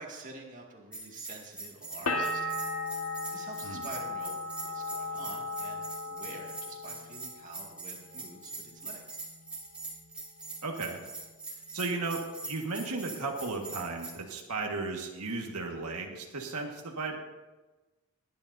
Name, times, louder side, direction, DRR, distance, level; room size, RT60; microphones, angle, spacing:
voice 1, 0.0-2.6 3.3-9.2, right 3 dB, 35° right, -1 dB, 2.1 m, -48 dB
Bell, 0.9-14.1, right 3 dB, 5° right, 3.2 m, -43 dB
sound 1, 2.1-7.7 8.0-8.7, left 2 dB, 85° left, 1.6 m, -36 dB
voice 2, 10.6-11.0 11.7-17.2, right 3 dB, 90° right, 1 dB, 1.7 m, -35 dB
21.5 x 10.5 x 2.7 m, 1.1 s
head